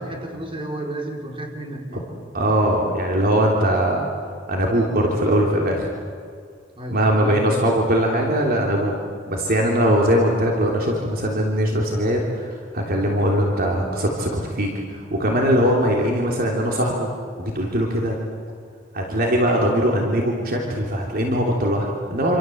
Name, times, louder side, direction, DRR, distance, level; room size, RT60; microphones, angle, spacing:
voice 1, 0.0-2.1 6.7-7.8 19.5-19.9, right 1 dB, 25° right, 2 dB, 4.5 m, -32 dB
voice 2, 2.3-4.1 4.5-5.9 6.9-8.9 9.3-17.1 17.4-18.2 18.9-22.4, equal, 50° right, -1 dB, 3.3 m, -21 dB
27.5 x 27.5 x 7.9 m, 2.2 s
head